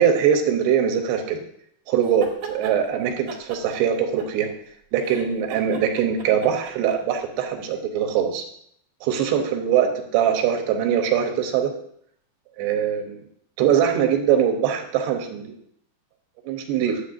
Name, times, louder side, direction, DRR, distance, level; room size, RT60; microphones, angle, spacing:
voice 1, 0.0-1.4 1.9-4.5 4.9-8.4 9.0-11.7 12.6-13.2 13.6-15.6 16.5-17.0, right 8 dB, 85° right, 4 dB, 3.1 m, -22 dB
sound 1, 2.0-2.8 3.3-4.7 5.0-7.2, right 5 dB, 70° right, 1.8 m, -38 dB
10.0 x 8.0 x 2.6 m, 0.68 s
omnidirectional pair, 4.6 m